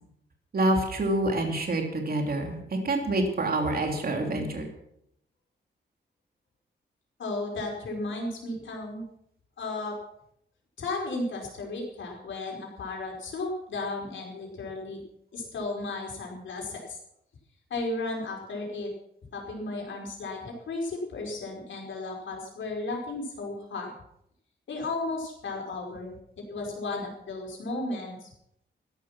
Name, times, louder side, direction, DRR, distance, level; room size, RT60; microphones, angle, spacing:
voice 1, 0.5-4.7, right 1 dB, 50° right, 3 dB, 3.0 m, -27 dB
voice 2, 7.2-9.0 9.6-10.0 10.8-15.0 15.3-17.0 17.7-18.9 19.3-23.9 24.7-26.1 26.5-28.3, left 2 dB, 85° left, -1 dB, 5.1 m, -34 dB
14.0 x 11.5 x 6.0 m, 0.75 s
wide cardioid pair, 120°, 19 cm